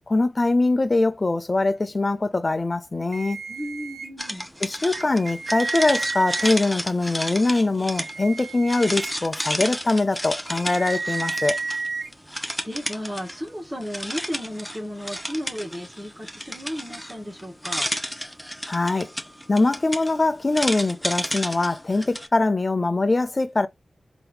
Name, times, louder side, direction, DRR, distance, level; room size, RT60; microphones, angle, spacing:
voice 1, 0.1-3.4 4.6-11.6 18.7-19.1 19.5-23.7, left 2 dB, 40° left, 0.7 m, -22 dB
sound 1, 3.1-4.1 4.9-6.5 7.8-9.1 10.5-12.1, right 4 dB, 75° right, 0.9 m, -32 dB
voice 2, 3.5-4.5 12.6-17.9, equal, 15° right, 1.7 m, -34 dB
sound 2, 4.2-11.9 12.1-13.5 13.8-22.3, equal, 5° left, 0.9 m, -32 dB
3.8 x 3.0 x 3.3 m
cardioid pair, 55°, 0 cm